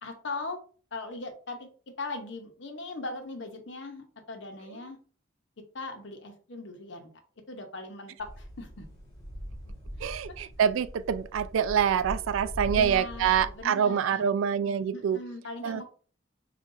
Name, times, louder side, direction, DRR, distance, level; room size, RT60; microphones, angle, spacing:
voice 1, 0.0-0.6 0.9-1.7 2.0-5.0 5.7-7.1 7.5-8.8 10.0-10.1 12.7-14.3 14.9-15.8, left 3 dB, 65° left, 0.8 m, -39 dB
sound 1, 8.2-13.6, equal, 20° left, 1.3 m, -40 dB
voice 2, 10.0-15.2 15.6-15.8, right 8 dB, 90° right, 0.3 m, -26 dB
5.4 x 2.4 x 2.6 m
head